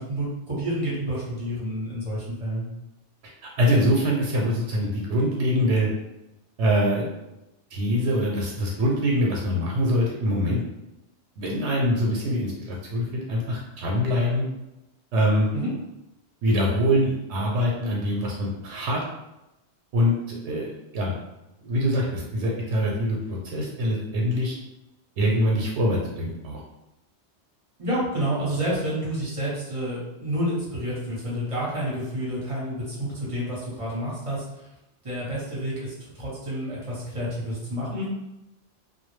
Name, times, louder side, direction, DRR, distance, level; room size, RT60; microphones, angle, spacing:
voice 1, 0.0-2.7 15.5-15.7 27.8-34.7 35.0-38.1, equal, 35° right, -7 dB, 0.8 m, -29 dB
voice 2, 3.6-5.9 6.6-7.1 7.7-10.6 11.4-14.5 15.1-15.5 16.4-19.0 19.9-21.2 21.6-24.5 25.2-26.6, equal, 80° right, -2 dB, 0.9 m, -24 dB
2.2 x 2.0 x 3.1 m, 0.94 s
omnidirectional pair, 1.2 m